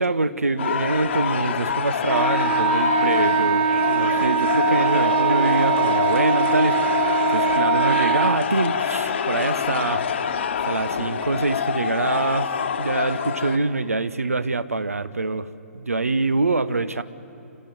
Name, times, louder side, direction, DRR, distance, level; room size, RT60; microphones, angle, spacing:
voice 1, 0.0-10.0 10.6-12.5 12.8-17.0, right 3 dB, 75° right, 15 dB, 0.9 m, -25 dB
sound 1, 0.6-13.6, left 7 dB, 50° left, 1.3 m, -25 dB
Wind instrument woodwind instrument, 2.1-8.5, right 6 dB, 40° right, 1.5 m, -22 dB
27.0 x 13.0 x 9.3 m, 2.7 s
figure-of-eight pair, 125°, 8 cm